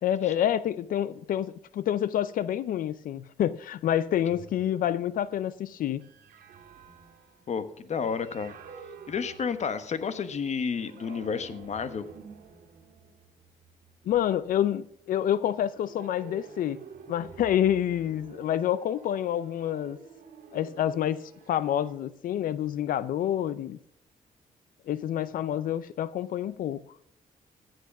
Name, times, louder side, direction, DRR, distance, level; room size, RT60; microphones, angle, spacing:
voice 1, 0.0-6.0 14.0-16.8 17.1-20.0 20.5-23.8 24.9-26.8, left 10 dB, 75° left, 0.5 m, -28 dB
sound 1, 4.3-10.2 10.7-14.6 15.4-22.0, right 6 dB, 85° right, 1.7 m, -50 dB
voice 2, 7.5-8.5 9.1-12.1, left 6 dB, 50° left, 1.2 m, -31 dB
15.0 x 7.9 x 6.0 m
cardioid pair, 85°, 14 cm